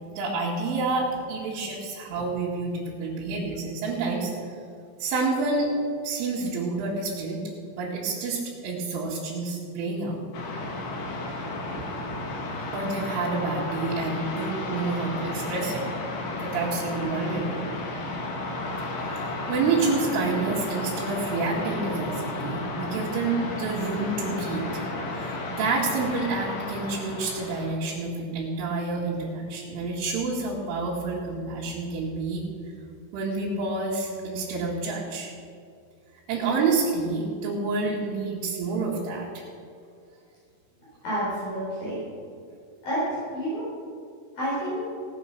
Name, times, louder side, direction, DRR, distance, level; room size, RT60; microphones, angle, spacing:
voice 1, 0.2-4.6 5.0-5.7 6.0-10.2 11.8-11.9 12.1-12.2 12.4-15.8 16.4-17.6 18.9-24.6 25.1-32.4 33.1-35.3 36.3-39.4, right 3 dB, 85° right, -7 dB, 4.5 m, -28 dB
sound 1, 10.3-27.7, left 2 dB, 70° left, 1.6 m, -33 dB
voice 2, 41.0-42.0 42.8-43.7 44.3-44.8, equal, 50° left, -9 dB, 5.9 m, -29 dB
17.5 x 9.2 x 5.9 m, 2.3 s
omnidirectional pair, 5.5 m